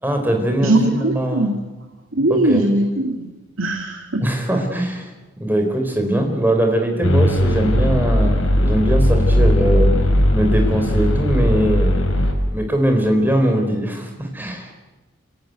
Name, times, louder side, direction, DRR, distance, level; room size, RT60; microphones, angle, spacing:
voice 1, 0.0-1.5 2.3-2.7 4.2-5.1 5.4-9.9 10.3-12.0 12.5-14.8, right 1 dB, 10° right, 4 dB, 4.1 m, -21 dB
voice 2, 0.6-1.6 2.1-3.3 3.6-4.3, right 1 dB, 75° right, 4 dB, 2.3 m, -20 dB
sound 1, 7.0-12.3, left 1 dB, 80° left, 4.6 m, -17 dB
28.0 x 17.5 x 9.4 m, 1.1 s
head